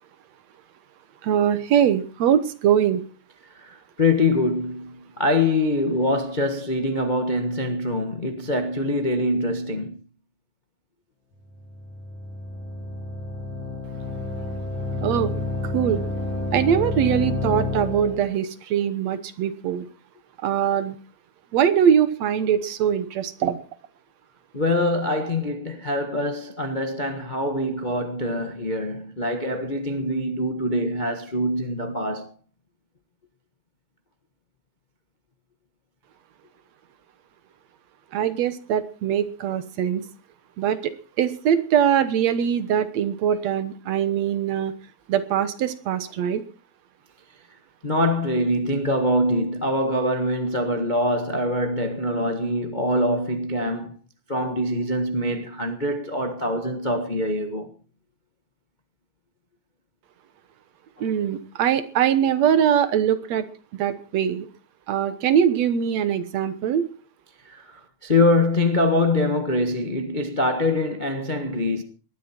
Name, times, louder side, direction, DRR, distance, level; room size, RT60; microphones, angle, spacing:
voice 1, 1.2-3.0 15.0-15.3 15.7-16.0 16.5-19.9 20.4-21.0 21.5-23.6 38.1-40.0 40.6-44.7 45.1-46.4 61.0-63.4 63.7-64.5 64.9-66.9, right 9 dB, 70° right, 2.2 m, -22 dB
voice 2, 3.5-10.0 24.5-32.3 47.8-54.0 54.3-57.7 61.0-61.1 67.5-71.8, left 1 dB, 30° left, 0.8 m, -24 dB
sound 1, 11.5-18.3, left 2 dB, 55° left, 6.4 m, -30 dB
19.5 x 12.5 x 4.4 m
omnidirectional pair, 3.4 m